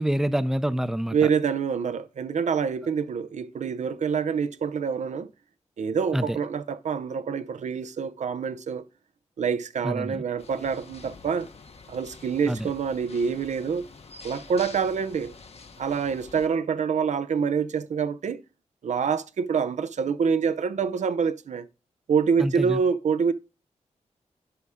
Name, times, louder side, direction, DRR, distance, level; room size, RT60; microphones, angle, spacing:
voice 1, 0.0-1.3 6.1-6.4 9.8-10.2 12.5-12.7 22.4-22.8, equal, 5° right, 0.5 m, -27 dB
voice 2, 1.1-5.3 5.8-8.8 9.4-11.5 11.9-13.8 14.2-15.3 15.8-18.4 18.8-21.7 22.1-23.3, right 6 dB, 75° right, 0.6 m, -26 dB
sound 1, 10.4-16.5, left 4 dB, 55° left, 1.0 m, -47 dB
11.0 x 4.9 x 3.5 m
wide cardioid pair, 85°, 12 cm